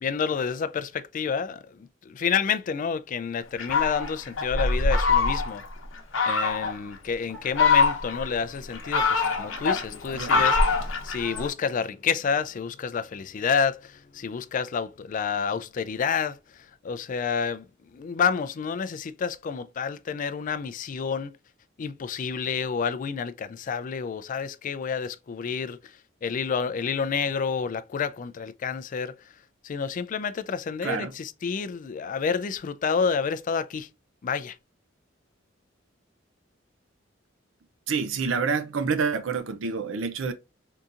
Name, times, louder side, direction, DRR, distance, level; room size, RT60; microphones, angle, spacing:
voice 1, 0.0-5.6 6.2-17.7 17.9-21.4 21.8-25.9 26.2-29.2 29.6-33.9 34.2-34.6, left 6 dB, 45° left, 0.3 m, -29 dB
Fowl, 3.6-5.7 6.1-6.8 7.3-8.3 8.7-11.5, left 4 dB, 80° left, 0.9 m, -23 dB
voice 2, 30.8-31.1 37.9-40.3, right 5 dB, 80° right, 0.5 m, -28 dB
3.7 x 2.7 x 2.4 m
head